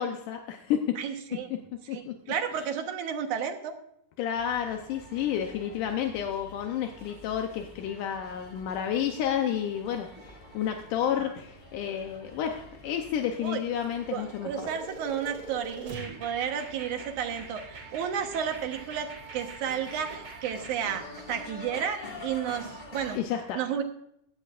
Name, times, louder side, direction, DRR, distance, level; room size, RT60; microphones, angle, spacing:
voice 1, 0.0-1.0 1.9-2.1 4.2-14.7 23.1-23.8, left 9 dB, 80° left, 4 dB, 2.4 m, -31 dB
voice 2, 1.0-1.5 1.9-3.7 11.2-11.3 13.4-13.6 14.1-23.2 23.6-23.8, right 8 dB, 70° right, 6 dB, 2.5 m, -32 dB
sound 1, 4.3-23.2, left 1 dB, 15° left, 1.8 m, -47 dB
sound 2, 14.6-21.0, right 3 dB, 40° right, 2.8 m, -44 dB
16.0 x 12.5 x 2.5 m, 0.74 s
omnidirectional pair, 3.7 m